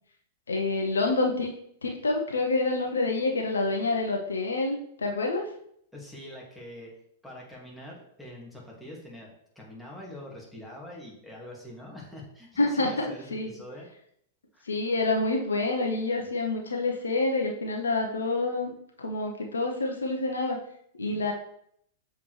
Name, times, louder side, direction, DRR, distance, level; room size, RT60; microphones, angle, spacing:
voice 1, 0.5-1.5 1.8-5.5 12.6-13.5 14.7-20.6 21.0-21.3, left 2 dB, 80° left, 2 dB, 1.0 m, -27 dB
voice 2, 5.9-6.9 7.2-13.9 14.5-14.7, left 1 dB, ahead, -5 dB, 2.3 m, -44 dB
7.0 x 4.6 x 3.3 m, 0.70 s
figure-of-eight pair, 100°, 0 cm